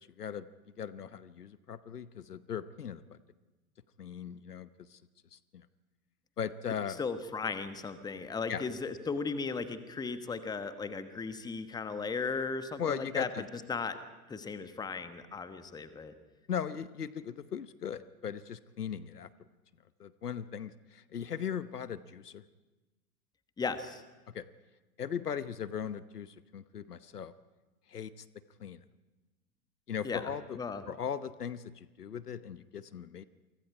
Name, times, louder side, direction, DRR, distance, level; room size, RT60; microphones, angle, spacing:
voice 1, 0.8-3.2 4.0-5.0 5.5-5.6 6.4-7.0 8.5-8.6 12.8-13.4 16.5-19.3 20.0-22.4 24.3-24.4 25.0-27.3 27.9-28.1 28.6-28.8 29.9-30.6 30.9-33.2, left 8 dB, 70° left, 15 dB, 1.0 m, -38 dB
voice 2, 6.7-14.0 14.3-16.1 23.6-24.0 30.0-30.8, left 4 dB, 10° left, 10 dB, 1.2 m, -36 dB
28.5 x 24.0 x 4.8 m, 1.2 s
figure-of-eight pair, 100°, 47 cm